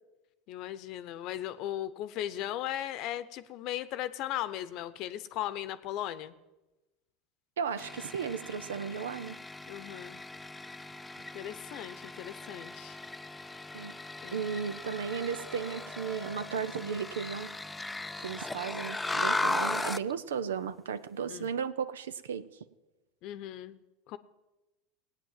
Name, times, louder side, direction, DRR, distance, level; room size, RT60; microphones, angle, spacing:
voice 1, 0.5-6.4 9.7-10.2 11.2-13.0 14.2-14.5 21.3-21.5 23.2-23.8 24.1-24.2, left 12 dB, 55° left, 14 dB, 0.8 m, -37 dB
voice 2, 7.6-9.4 13.7-13.9 14.3-17.5 18.2-22.5, right 7 dB, 85° right, 15 dB, 0.6 m, -35 dB
sound 1, 7.8-20.1, left 2 dB, 10° left, 0.5 m, -37 dB
17.0 x 9.0 x 7.5 m, 1.1 s
hypercardioid pair, 95°, 0 cm